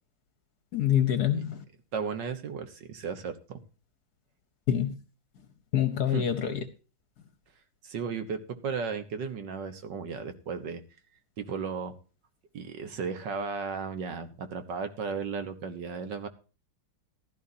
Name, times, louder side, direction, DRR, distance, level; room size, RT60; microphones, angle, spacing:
voice 1, 0.7-1.6 4.7-4.9 5.7-6.6, left 10 dB, 55° left, 1.4 m, -26 dB
voice 2, 1.9-3.6 6.1-6.2 7.8-10.8 11.4-11.9 12.5-16.3, right 5 dB, 60° right, 1.8 m, -35 dB
15.5 x 12.5 x 2.7 m
omnidirectional pair, 2.3 m